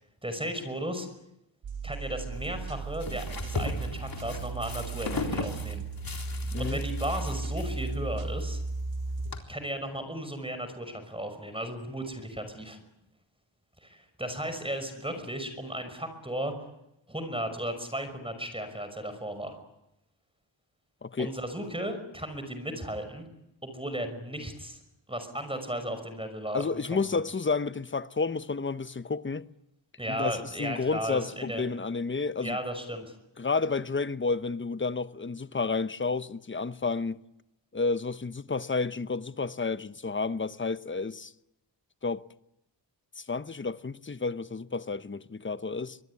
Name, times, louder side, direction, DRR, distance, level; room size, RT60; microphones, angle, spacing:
voice 1, 0.2-1.1 1.8-5.8 6.6-8.6 9.5-12.8 13.8-16.5 17.1-19.6 21.2-23.3 23.6-24.8 25.1-27.0 30.0-31.6 32.4-33.1, right 1 dB, 10° right, 5.7 m, -35 dB
sound 1, 1.6-9.3, right 3 dB, 75° right, 3.9 m, -35 dB
sound 2, 2.3-9.4, left 3 dB, 50° left, 3.9 m, -38 dB
voice 2, 6.5-6.8 21.0-21.3 26.5-29.5 30.1-32.6 33.4-37.2 37.7-41.3 42.0-42.2 43.2-46.0, left 4 dB, 25° left, 1.0 m, -31 dB
24.5 x 20.5 x 9.8 m
cardioid pair, 70°, 46 cm